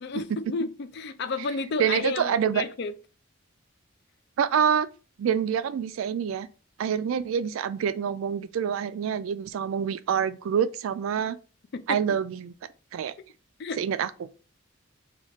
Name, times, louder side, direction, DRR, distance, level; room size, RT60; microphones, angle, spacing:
voice 1, 0.0-2.9 11.7-12.0 13.6-13.8, left 4 dB, 55° left, 0.4 m, -31 dB
voice 2, 1.8-2.6 4.4-4.9 5.2-6.5 6.8-11.4 11.9-12.5 12.9-13.1 13.8-14.3, right 8 dB, 75° right, 0.3 m, -26 dB
3.0 x 2.3 x 4.3 m
head